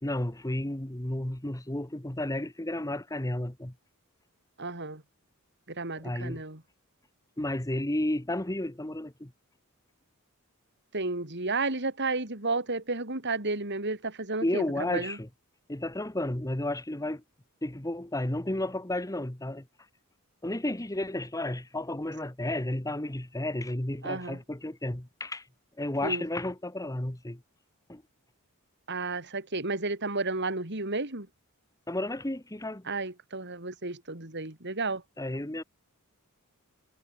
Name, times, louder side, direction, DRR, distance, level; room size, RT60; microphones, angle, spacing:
voice 1, 0.0-3.7 6.0-6.4 7.4-9.3 14.4-15.3 15.7-17.2 17.6-19.7 20.4-25.4 25.8-27.4 27.9-28.0 31.9-32.9 35.2-35.6, left 1 dB, 15° left, 1.3 m, -32 dB
voice 2, 4.6-5.0 5.7-6.6 10.9-14.6 14.9-15.2 24.0-24.4 26.0-26.2 28.9-31.3 32.9-35.0, right 3 dB, 50° right, 4.2 m, -32 dB
head